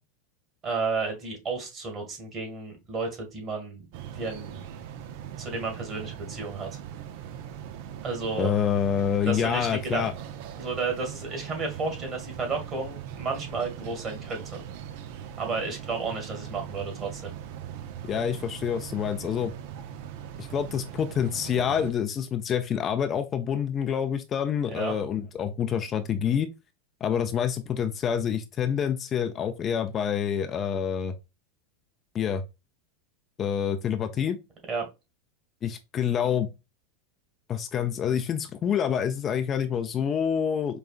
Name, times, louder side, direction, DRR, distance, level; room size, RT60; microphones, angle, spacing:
voice 1, 0.6-3.9 4.1-4.7 5.4-6.7 8.0-8.5 9.3-10.1 10.6-14.6 15.4-17.3 24.7-25.0 34.7-34.9, right 4 dB, 35° right, 1.8 m, -32 dB
sound 1, 3.9-21.9, right 9 dB, 60° right, 0.5 m, -40 dB
voice 2, 8.4-10.1 18.0-19.5 20.4-26.5 27.0-31.1 32.1-32.4 33.4-34.4 35.6-36.5 37.5-40.8, left 8 dB, 35° left, 0.4 m, -27 dB
5.0 x 2.3 x 2.4 m
hypercardioid pair, 95°, 0 cm